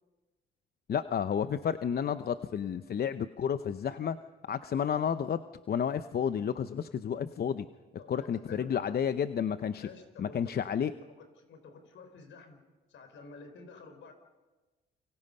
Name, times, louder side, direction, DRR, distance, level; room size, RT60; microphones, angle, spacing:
voice 1, 0.9-4.2 4.5-5.4 5.7-7.7 8.1-9.9 10.2-10.9, left 8 dB, 50° left, 11 dB, 0.8 m, -31 dB
voice 2, 8.0-9.0 9.8-10.6 11.0-12.6 12.9-14.1, left 4 dB, 70° left, 7 dB, 4.9 m, -50 dB
29.0 x 24.5 x 5.5 m, 1.2 s
cardioid pair, 90°, 20 cm